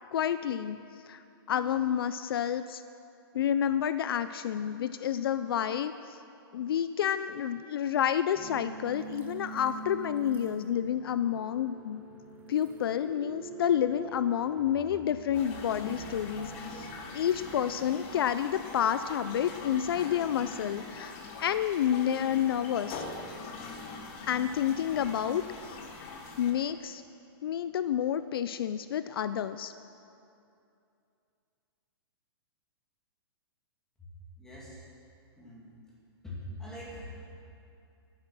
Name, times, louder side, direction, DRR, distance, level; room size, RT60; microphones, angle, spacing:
voice 1, 0.1-0.8 1.1-1.2 1.5-2.8 3.3-6.2 6.5-12.0 12.5-23.0 24.3-25.8 26.4-27.0 27.4-29.7, left 9 dB, 65° left, 12 dB, 0.4 m, -29 dB
sound 1, 8.3-18.0, right 5 dB, 15° right, 0.9 m, -45 dB
sound 2, 15.3-26.5, left 4 dB, 30° left, 1.2 m, -43 dB
voice 2, 34.4-34.8 35.4-35.7 36.2-37.3, left 1 dB, 5° left, -6 dB, 2.4 m, -43 dB
10.5 x 10.5 x 6.1 m, 2.6 s
hypercardioid pair, 165°, 13 cm